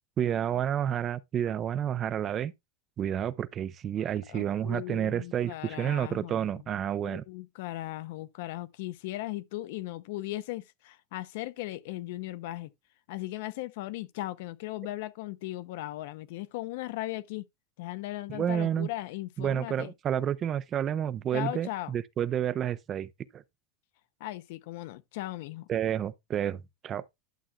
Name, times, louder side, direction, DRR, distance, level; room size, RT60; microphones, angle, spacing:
voice 1, 0.2-2.5 3.0-7.2 18.3-18.9 19.4-23.4 25.7-27.0, right 9 dB, 20° right, 0.4 m, -30 dB
voice 2, 4.3-6.6 7.0-12.7 13.1-17.5 17.8-19.9 21.3-21.9 24.2-25.7, left 16 dB, 55° left, 0.7 m, -37 dB
11.5 x 7.6 x 2.3 m
supercardioid pair, 175°, 0 cm